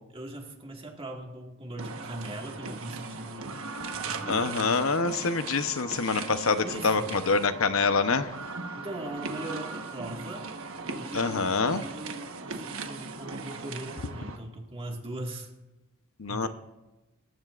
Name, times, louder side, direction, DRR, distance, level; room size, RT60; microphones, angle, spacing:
voice 1, 0.1-3.6 3.9-4.6 6.6-7.1 8.8-10.5 10.9-15.5 16.3-16.5, right 1 dB, 25° right, 1 dB, 1.9 m, -40 dB
sound 1, 1.8-14.4, right 3 dB, 75° right, 1.2 m, -38 dB
voice 2, 4.3-8.3 11.1-11.8 16.2-16.5, left 4 dB, 70° left, 9 dB, 0.9 m, -26 dB
27.5 x 14.5 x 2.5 m, 1.1 s
head